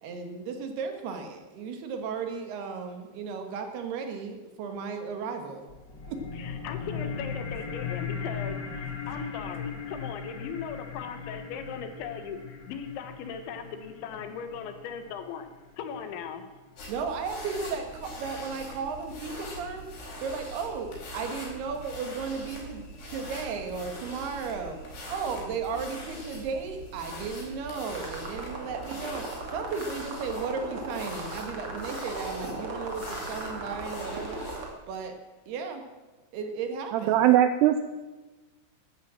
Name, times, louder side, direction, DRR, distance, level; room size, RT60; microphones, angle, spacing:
voice 1, 0.0-5.7 6.1-6.2 16.9-29.2 29.5-34.4 34.9-35.2 35.5-35.9 36.3-37.2, right 5 dB, 65° right, 5 dB, 3.2 m, -35 dB
sound 1, 5.7-16.7, left 6 dB, 45° left, 1.3 m, -38 dB
voice 2, 6.4-15.5 15.8-16.5, left 7 dB, 80° left, 8 dB, 3.5 m, -38 dB
sound 2, 16.8-34.7, equal, 60° left, 6.3 m, -42 dB
sound 3, 27.9-34.7, right 2 dB, 35° right, 2.6 m, -38 dB
voice 3, 36.9-37.8, right 12 dB, 85° right, 10 dB, 2.4 m, -20 dB
13.0 x 12.5 x 7.5 m, 1.2 s
omnidirectional pair, 5.4 m